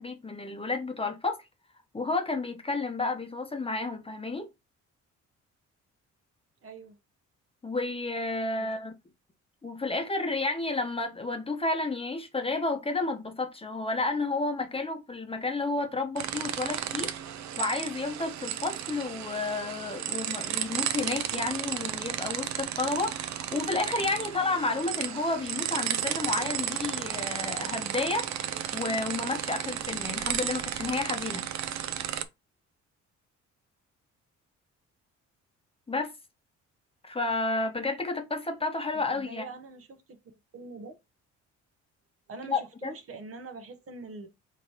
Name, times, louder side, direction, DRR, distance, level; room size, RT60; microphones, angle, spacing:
voice 1, 0.0-1.4 1.9-4.5 7.6-8.9 9.6-17.1 17.6-31.4 35.9-36.1 37.0-39.5 42.5-42.9, left 3 dB, 20° left, 0.8 m, -31 dB
voice 2, 6.6-6.9 8.6-8.7 38.9-40.0 40.5-41.0 42.3-44.3, right 3 dB, 50° right, 0.9 m, -43 dB
sound 1, 16.2-32.2, right 10 dB, 65° right, 0.6 m, -33 dB
4.0 x 3.2 x 2.9 m
cardioid pair, 90°, 30 cm